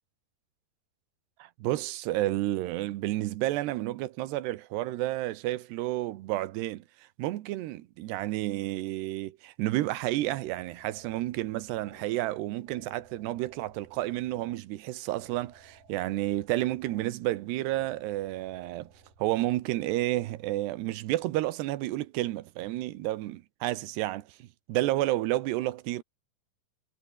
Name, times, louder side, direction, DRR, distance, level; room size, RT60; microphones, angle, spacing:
voice 1, 1.4-18.9 19.2-26.0, right 16 dB, 90° right, 3.2 m, -31 dB
sound 1, 10.1-19.6, right 4 dB, 55° right, 7.9 m, -56 dB
omnidirectional pair, 4.7 m